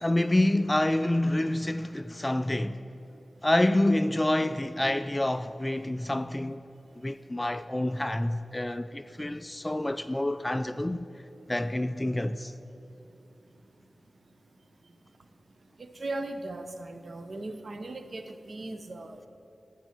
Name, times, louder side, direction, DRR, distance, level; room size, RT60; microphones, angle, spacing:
voice 1, 0.0-2.9 3.4-6.6 6.9-11.1 11.5-12.5, left 1 dB, 20° left, 0.3 m, -27 dB
voice 2, 15.8-19.3, right 2 dB, 55° right, 0.8 m, -38 dB
13.0 x 7.8 x 5.9 m
cardioid pair, 60°, 0 cm